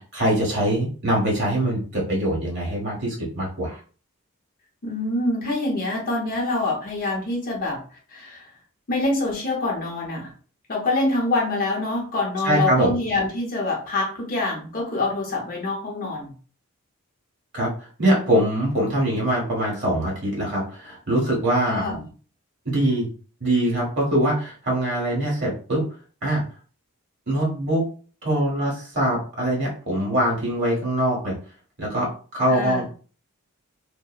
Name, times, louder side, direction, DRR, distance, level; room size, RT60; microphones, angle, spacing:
voice 1, 0.0-3.8 12.4-13.0 17.5-21.8 22.6-23.1 23.4-25.8 26.2-26.4 27.3-27.8 28.2-31.3 31.8-32.9, right 1 dB, 50° right, -3 dB, 1.4 m, -23 dB
voice 2, 4.8-7.8 8.1-8.5 8.9-10.3 10.7-16.3 21.6-22.1 32.5-32.9, left 2 dB, 40° left, -1 dB, 0.7 m, -25 dB
2.8 x 2.1 x 2.3 m, 0.39 s
head